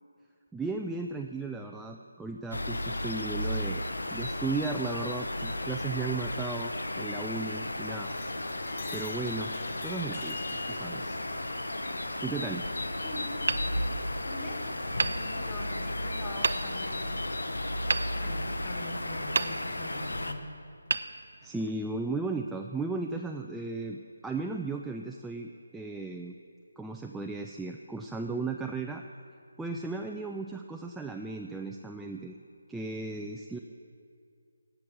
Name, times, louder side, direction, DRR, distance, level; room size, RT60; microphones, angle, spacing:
voice 1, 0.5-3.8 4.1-8.1 8.9-9.5 9.8-11.2 12.2-12.6 21.4-26.4 26.8-29.0 29.6-32.4 32.7-33.6, right 3 dB, 5° right, 1 dB, 0.3 m, -35 dB
sound 1, 2.5-20.3, left 1 dB, 85° left, 0.9 m, -34 dB
sound 2, 5.6-7.8 8.1-10.8, left 4 dB, 35° left, 1.1 m, -46 dB
voice 2, 13.0-13.6 14.2-14.6 15.0-17.2 18.2-20.5, left 2 dB, 15° left, -3 dB, 2.1 m, -42 dB
Hammer, 13.4-14.5 15.0-15.9 16.4-17.0 17.9-18.9 19.3-20.1 20.9-21.8, right 4 dB, 60° right, 0.5 m, -33 dB
16.5 x 6.0 x 7.7 m, 2.3 s
figure-of-eight pair, 160°, 0 cm